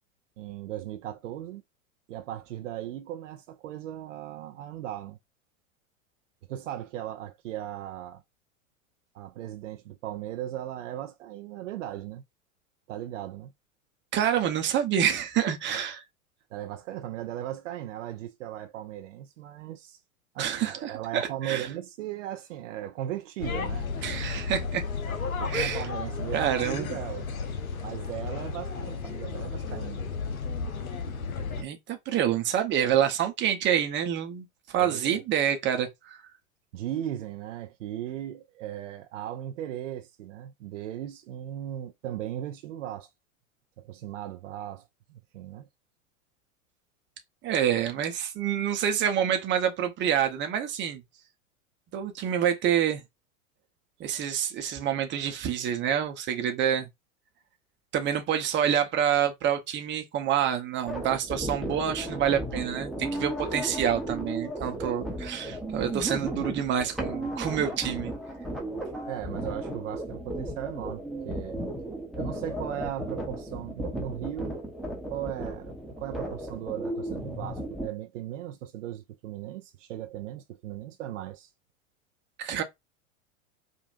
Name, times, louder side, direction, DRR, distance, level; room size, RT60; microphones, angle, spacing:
voice 1, 0.4-1.6 2.1-5.2 6.5-8.2 9.1-12.2 12.9-13.5 16.5-20.0 20.3-23.9 25.4-27.3 27.8-30.0 34.8-35.2 36.7-43.1 43.8-45.7 64.6-64.9 69.0-71.6 72.1-74.6 75.1-81.5, right 12 dB, 60° right, 0.6 m, -37 dB
voice 2, 14.1-16.0 20.4-21.7 24.0-24.8 25.4-25.9 26.3-26.9 31.6-36.2 47.4-51.0 51.9-53.0 54.0-56.9 57.9-68.1 82.4-82.6, right 9 dB, 25° right, 0.9 m, -27 dB
sound 1, 23.4-31.6, left 5 dB, 80° left, 0.8 m, -33 dB
sound 2, 60.9-77.9, right 1 dB, ahead, 1.0 m, -35 dB
5.0 x 2.5 x 2.5 m
figure-of-eight pair, 95°, 42 cm